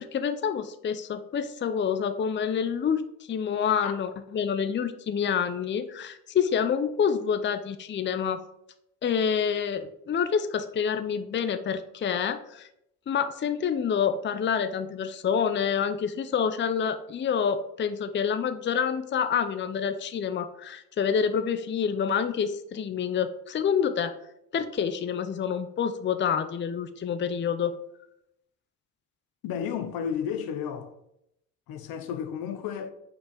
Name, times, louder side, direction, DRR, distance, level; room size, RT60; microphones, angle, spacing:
voice 1, 0.0-3.0 3.3-8.4 9.0-12.7 13.1-24.1 24.5-27.7, left 7 dB, 30° left, 0.6 m, -27 dB
voice 2, 29.4-30.9 31.7-32.9, left 8 dB, 70° left, 0.8 m, -32 dB
5.6 x 4.4 x 5.2 m
supercardioid pair, 60°, 38 cm